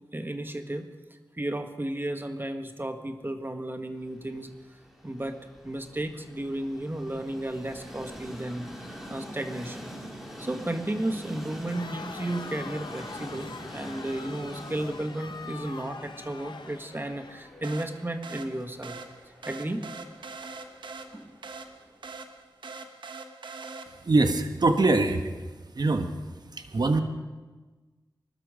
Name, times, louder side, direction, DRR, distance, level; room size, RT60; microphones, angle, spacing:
voice 1, 0.1-0.9 1.3-4.5 5.0-5.4 5.6-9.9 10.4-19.0 19.5-19.8 21.1-21.3, right 1 dB, 25° right, 6 dB, 1.6 m, -33 dB
Train, 4.0-22.1, equal, 5° right, 4.9 m, -45 dB
Crowd, 11.6-17.8, left 4 dB, 70° left, 0.9 m, -43 dB
sound 1, 17.6-24.2, right 4 dB, 80° right, 1.2 m, -43 dB
voice 2, 24.0-25.3 25.7-26.1 26.5-27.0, right 2 dB, 60° right, 7 dB, 1.4 m, -23 dB
20.5 x 12.5 x 5.1 m, 1.3 s
cardioid pair, 40°, 8 cm